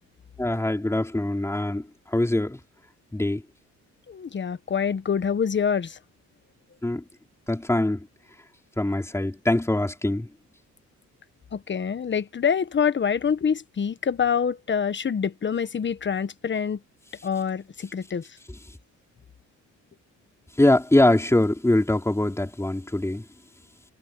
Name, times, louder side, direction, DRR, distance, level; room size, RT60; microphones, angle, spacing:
voice 1, 0.4-1.8 2.1-2.6 3.1-3.4 6.8-7.0 7.5-8.1 8.8-10.3 18.5-18.6 20.6-23.2, left 1 dB, 10° left, 4.5 m, -23 dB
voice 2, 4.1-5.9 11.5-16.8 17.2-18.2, left 7 dB, 40° left, 1.3 m, -26 dB
cardioid pair, 90°, 30 cm